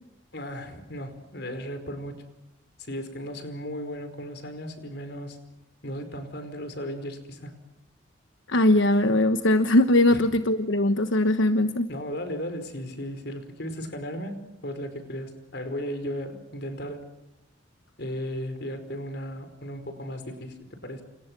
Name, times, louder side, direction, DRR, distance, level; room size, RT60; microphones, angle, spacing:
voice 1, 0.3-2.2 2.8-5.4 5.8-7.6 10.1-10.2 11.9-17.1 18.0-21.0, equal, 60° left, 9 dB, 4.9 m, -36 dB
voice 2, 8.5-11.9, left 1 dB, 80° left, 9 dB, 1.2 m, -21 dB
30.0 x 28.0 x 6.3 m, 0.91 s
head